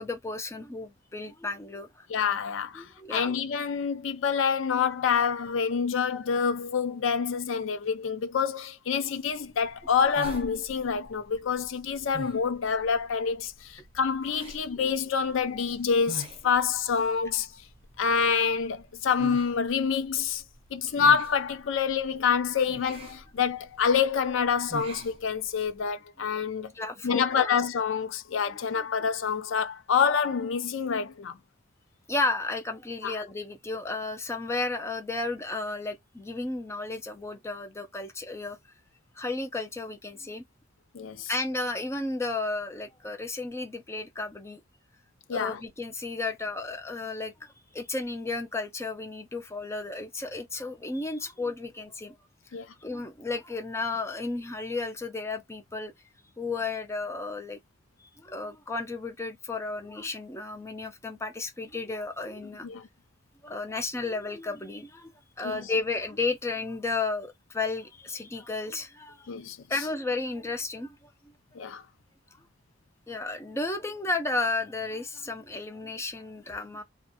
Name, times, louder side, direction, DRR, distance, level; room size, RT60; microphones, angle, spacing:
voice 1, 0.0-1.9 2.7-3.3 26.7-27.6 32.1-38.6 39.2-40.4 41.3-44.6 45.3-52.2 52.8-55.9 56.4-57.6 58.2-62.7 63.4-65.1 65.4-69.3 69.7-71.1 73.1-76.8, left 3 dB, 15° left, 0.5 m, -33 dB
voice 2, 2.1-17.5 18.0-20.4 20.7-26.7 27.0-31.4 33.0-33.2 40.9-41.3 45.3-45.6 52.5-52.7 62.6-62.9 65.4-65.7 69.3-69.6 71.5-71.8, left 6 dB, 90° left, 0.5 m, -27 dB
sound 1, 9.3-25.9, right 1 dB, 30° right, 0.6 m, -47 dB
2.6 x 2.2 x 2.6 m
head